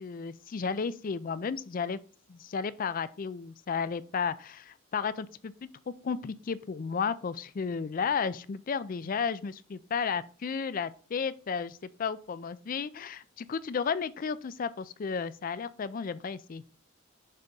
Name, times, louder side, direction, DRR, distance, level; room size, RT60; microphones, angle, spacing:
voice 1, 0.0-2.0 2.3-16.6, left 6 dB, 45° left, 0.4 m, -33 dB
6.7 x 3.5 x 5.2 m
head